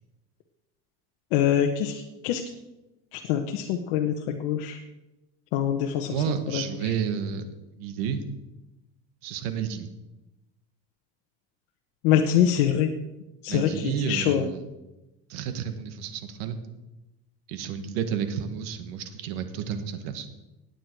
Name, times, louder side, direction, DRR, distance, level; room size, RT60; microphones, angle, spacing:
voice 1, 1.3-2.4 3.1-4.8 5.5-6.1 6.5-6.9 12.0-12.9 13.4-14.5, left 10 dB, 70° left, 3 dB, 1.2 m, -24 dB
voice 2, 6.0-7.4 7.8-8.2 9.2-9.9 13.5-14.6 15.3-16.6 17.5-20.3, right 7 dB, 80° right, 9 dB, 1.7 m, -31 dB
17.5 x 9.4 x 4.7 m, 0.99 s
cardioid pair, 150°, 30 cm